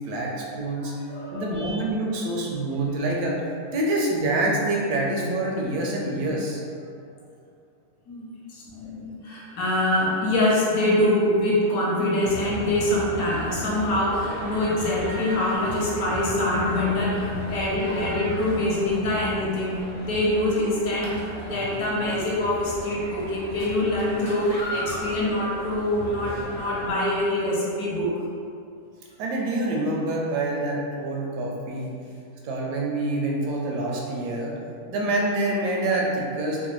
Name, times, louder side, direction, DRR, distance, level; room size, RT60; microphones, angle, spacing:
voice 1, 0.1-0.9 1.3-3.4 3.7-6.6 29.2-31.9 32.4-34.6 34.9-36.7, right 2 dB, 85° right, -2 dB, 1.2 m, -26 dB
voice 2, 0.8-1.7 8.1-28.1, left 1 dB, 70° left, -6 dB, 1.1 m, -25 dB
sound 1, 12.2-26.9, equal, 35° left, 0.6 m, -36 dB
3.1 x 2.1 x 3.0 m, 2.4 s
omnidirectional pair, 1.7 m